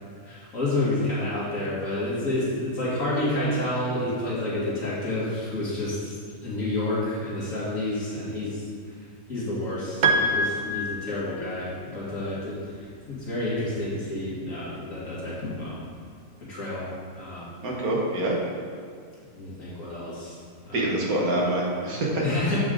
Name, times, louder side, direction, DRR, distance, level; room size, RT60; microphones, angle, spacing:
voice 1, 0.2-6.1 6.4-8.6 9.3-15.8 16.4-17.4 19.3-20.4 20.7-20.9 22.2-22.6, left 1 dB, 65° left, -8 dB, 2.6 m, -29 dB
Piano, 10.0-11.7, right 2 dB, 70° right, 0.4 m, -25 dB
voice 2, 17.6-18.3 20.7-22.2, right 1 dB, 85° right, -3 dB, 1.8 m, -25 dB
8.4 x 5.4 x 3.9 m, 2.1 s
omnidirectional pair, 1.5 m